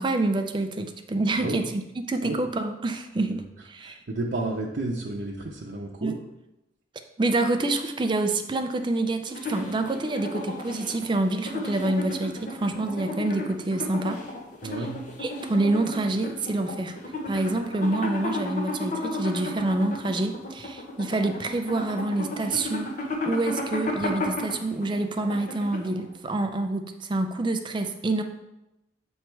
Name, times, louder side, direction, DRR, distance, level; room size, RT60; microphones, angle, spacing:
voice 1, 0.0-1.8 2.1-4.0 6.0-6.1 7.2-14.2 15.2-17.0 17.3-22.9 23.3-28.2, right 2 dB, 25° right, 7 dB, 0.4 m, -27 dB
voice 2, 3.8-6.2 14.6-15.1, right 2 dB, 90° right, -2 dB, 0.7 m, -32 dB
sound 1, 9.3-26.1, left 2 dB, 45° left, 1.0 m, -33 dB
7.8 x 3.2 x 4.5 m, 0.94 s
head